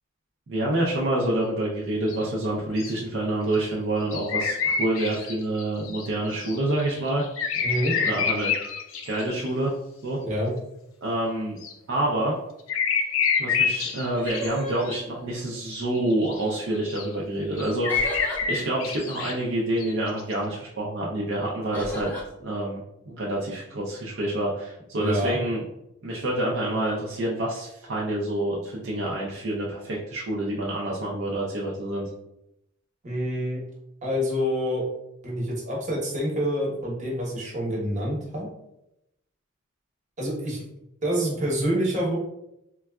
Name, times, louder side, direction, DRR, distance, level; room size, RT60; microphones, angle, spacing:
voice 1, 0.5-7.2 8.0-8.5 9.0-9.7 10.0-10.2 11.0-11.6 11.9-12.3 13.4-18.2 18.5-22.2 22.4-25.6 26.0-32.1, right 1 dB, 65° right, -4 dB, 0.5 m, -27 dB
sound 1, 2.1-2.2 2.8-2.9 3.5-3.7 4.1-6.1 6.4-9.5 11.6-11.7 12.7-14.5 14.8-15.0 15.7-15.8 16.1-16.4 16.9-17.1 17.6-19.3 19.8-19.9 20.2-20.3, left 6 dB, 75° left, 0.4 m, -27 dB
voice 2, 7.6-7.9 10.2-10.5 25.0-25.4 33.0-33.6 34.0-34.8 35.2-38.5 40.2-40.6 41.0-42.2, equal, 40° right, -3 dB, 1.0 m, -27 dB
sound 2, 13.9-15.7 16.3-16.8 17.9-18.4 21.7-22.3, left 1 dB, 10° left, 0.7 m, -36 dB
3.8 x 2.3 x 2.2 m, 0.85 s
head